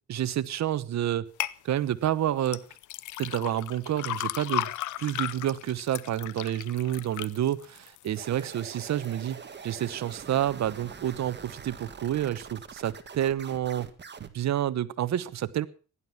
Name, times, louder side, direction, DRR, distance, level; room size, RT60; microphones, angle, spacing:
voice 1, 0.1-1.3 1.6-2.7 3.2-4.7 5.0-13.9 14.2-15.7, right 11 dB, 65° right, 15 dB, 1.1 m, -29 dB
sound 1, 1.4-1.6 2.5-8.6 9.0-9.6 10.0-10.1, left 15 dB, 80° left, 0.7 m, -35 dB
sound 2, 8.1-14.3, right 6 dB, 35° right, 1.7 m, -44 dB
16.5 x 11.5 x 5.8 m, 0.38 s
cardioid pair, 90°, 30 cm